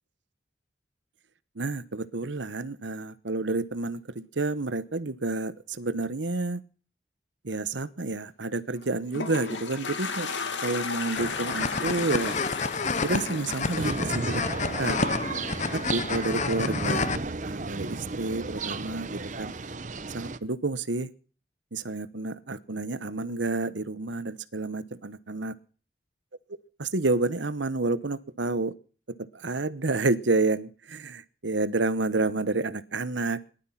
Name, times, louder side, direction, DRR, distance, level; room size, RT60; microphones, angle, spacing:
voice 1, 1.6-6.6 7.4-10.3 10.6-12.4 13.0-14.5 14.8-15.0 15.7-17.1 17.4-19.5 20.1-21.1 21.7-25.6 26.8-28.7 29.1-33.4, right 3 dB, 75° right, 16 dB, 1.1 m, -29 dB
Toilet flush, 8.8-15.1, left 5 dB, 80° left, 2.7 m, -34 dB
sound 1, 11.2-17.2, left 4 dB, 40° left, 0.9 m, -30 dB
sound 2, 13.8-20.4, right 3 dB, 40° right, 0.9 m, -33 dB
19.5 x 12.0 x 5.8 m, 0.40 s
head